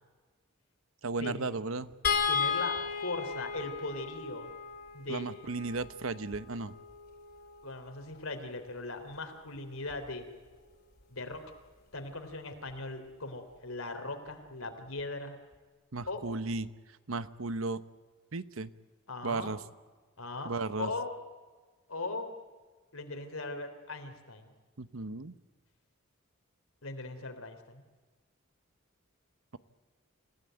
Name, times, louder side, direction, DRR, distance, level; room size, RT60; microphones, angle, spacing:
voice 1, 1.0-1.9 5.1-6.7 15.9-16.7 17.1-17.8 18.3-18.7 19.2-19.6 20.4-20.9 24.8-25.3, right 3 dB, 75° right, 14 dB, 1.0 m, -35 dB
sound 1, 2.0-8.4 9.9-10.1 10.4-10.6, left 6 dB, 50° left, 3.2 m, -35 dB
voice 2, 2.3-4.5 4.9-5.3 7.6-10.3 11.1-11.4 11.9-15.4 16.1-16.2 19.1-19.6 20.2-20.5 20.8-21.1 21.9-22.3 22.9-24.5 26.8-27.8, left 2 dB, 85° left, 6 dB, 3.5 m, -39 dB
27.5 x 16.5 x 9.2 m, 1.4 s
head